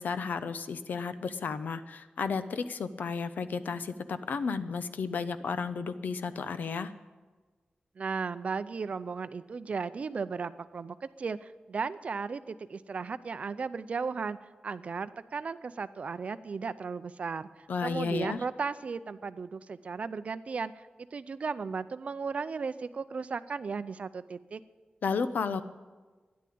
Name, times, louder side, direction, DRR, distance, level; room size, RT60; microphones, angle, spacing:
voice 1, 0.0-6.9 17.7-18.4 25.0-25.6, left 5 dB, 80° left, 12 dB, 0.7 m, -33 dB
voice 2, 8.0-14.4 14.6-17.5 17.8-24.6, right 5 dB, 45° right, 14 dB, 0.5 m, -35 dB
13.0 x 10.5 x 8.5 m, 1.3 s
wide cardioid pair, 175°, 3 cm